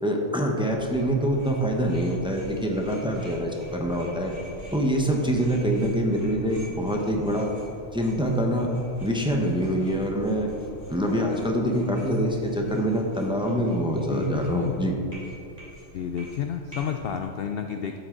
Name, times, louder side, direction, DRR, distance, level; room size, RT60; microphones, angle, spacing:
voice 1, 0.0-4.3 4.7-7.5 7.9-8.7 9.0-10.5 10.9-14.9, equal, 5° right, 0 dB, 0.9 m, -25 dB
sound 1, 0.7-17.2, equal, 30° left, 2.3 m, -45 dB
voice 2, 14.1-14.7 15.9-18.0, left 8 dB, 60° left, 5 dB, 0.6 m, -30 dB
12.0 x 8.0 x 3.9 m, 2.6 s
omnidirectional pair, 1.4 m